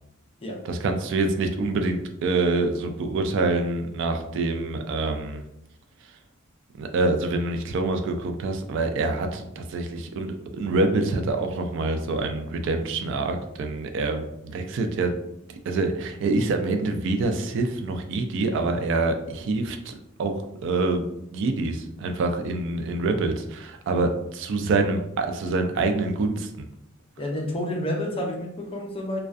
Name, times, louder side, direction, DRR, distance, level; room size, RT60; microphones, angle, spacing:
voice 1, 0.6-5.4 6.8-15.2 15.7-21.0 21.3-26.7, right 3 dB, 60° right, 5 dB, 0.3 m, -26 dB
voice 2, 27.2-29.2, left 1 dB, 25° left, 1 dB, 0.4 m, -29 dB
2.4 x 2.1 x 2.4 m, 0.82 s
head